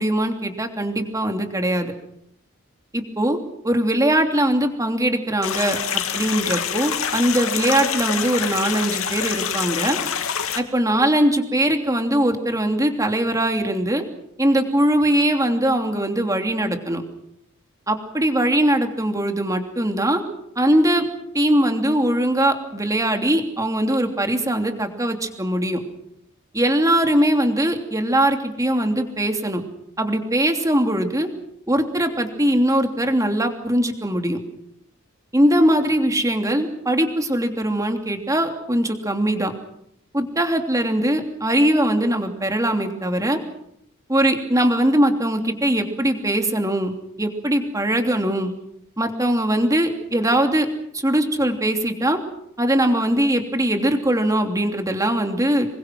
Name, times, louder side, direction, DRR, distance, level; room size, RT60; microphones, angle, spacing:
voice 1, 0.0-1.9 2.9-3.4 3.6-5.8 6.1-10.0 10.5-14.0 14.4-17.0 17.9-20.2 20.6-21.1 21.3-25.8 26.5-29.6 30.0-31.3 31.7-34.4 35.3-39.5 40.1-43.4 44.1-48.5 49.0-50.7 50.9-52.2 52.6-55.7, right 1 dB, 15° right, 5 dB, 3.0 m, -21 dB
sound 1, 5.4-10.6, left 8 dB, 80° left, 2.5 m, -26 dB
27.0 x 23.5 x 6.2 m, 0.75 s
head